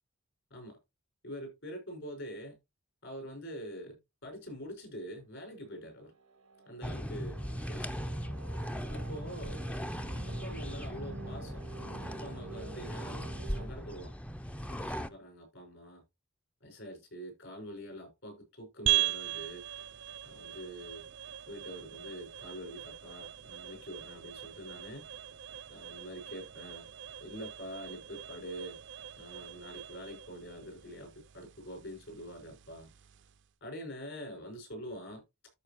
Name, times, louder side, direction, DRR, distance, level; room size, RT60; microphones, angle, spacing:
voice 1, 1.2-2.6 3.0-6.1 6.7-7.4 7.7-8.2 8.9-9.6 10.3-11.6 12.1-13.2 13.5-14.1 14.5-16.0 16.6-19.6 20.2-21.1 21.5-25.0 25.7-26.9 27.2-28.8 29.2-32.9 33.6-35.2, equal, 65° left, 5.6 m, -45 dB
sound 1, 5.9-13.7, right 3 dB, 80° right, 1.0 m, -49 dB
sound 2, 6.8-15.1, equal, 5° left, 0.5 m, -38 dB
sound 3, 18.9-33.5, right 14 dB, 60° right, 0.6 m, -39 dB
13.5 x 5.1 x 3.0 m
head